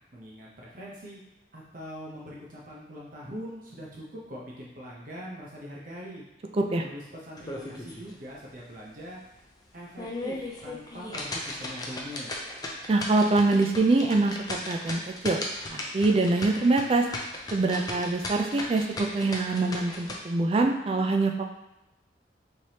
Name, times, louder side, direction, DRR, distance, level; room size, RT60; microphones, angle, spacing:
voice 1, 0.1-1.2 1.5-6.2 6.8-9.2 9.7-12.3, equal, 50° right, -4 dB, 0.7 m, -42 dB
sound 1, 7.4-8.1 8.5-8.6 9.1-9.2 9.8-20.2, left 2 dB, 20° left, 0.5 m, -36 dB
voice 2, 12.9-15.4 15.7-17.0 17.5-21.5, right 3 dB, 30° right, 4 dB, 0.3 m, -24 dB
4.5 x 3.2 x 2.8 m, 0.92 s
head